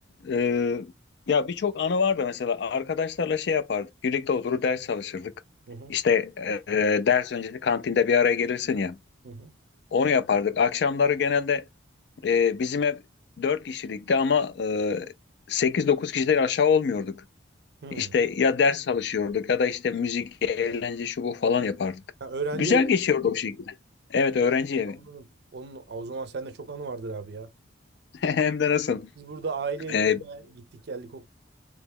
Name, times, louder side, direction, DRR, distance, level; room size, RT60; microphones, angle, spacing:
voice 1, 0.2-0.9 1.3-5.3 5.9-9.0 9.9-11.6 12.2-13.0 13.4-15.1 15.5-17.2 18.0-22.0 22.5-23.7 24.1-25.0 28.2-29.1 29.9-30.2, left 6 dB, 60° left, 0.4 m, -24 dB
voice 2, 17.8-18.1 22.2-22.9 25.0-25.2 25.5-27.5 29.2-31.3, right 4 dB, 55° right, 0.4 m, -35 dB
2.9 x 2.2 x 3.5 m
head